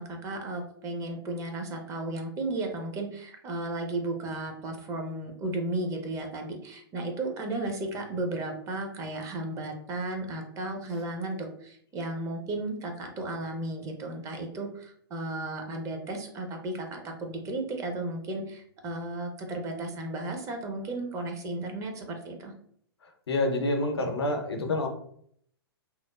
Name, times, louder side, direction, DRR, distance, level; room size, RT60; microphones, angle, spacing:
voice 1, 0.0-22.5, right 2 dB, 25° right, 3 dB, 0.5 m, -34 dB
voice 2, 23.3-24.9, left 2 dB, 75° left, 5 dB, 0.6 m, -27 dB
2.9 x 2.0 x 2.2 m, 0.64 s
hypercardioid pair, 115°, 13 cm